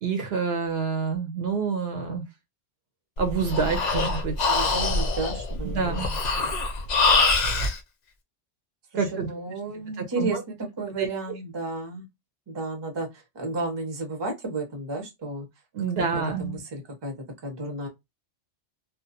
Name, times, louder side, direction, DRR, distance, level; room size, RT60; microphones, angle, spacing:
voice 1, 0.0-2.2 3.2-4.5 5.7-6.1 9.0-9.3 10.0-10.4 11.0-11.1 15.7-16.6, right 5 dB, 65° right, 0.8 m, -27 dB
Breathing, 3.2-7.8, left 3 dB, 55° left, 0.5 m, -24 dB
voice 2, 4.4-6.5 8.9-12.1 12.5-15.5 16.1-17.9, right 2 dB, 30° right, 0.6 m, -33 dB
2.3 x 2.2 x 2.7 m
omnidirectional pair, 1.2 m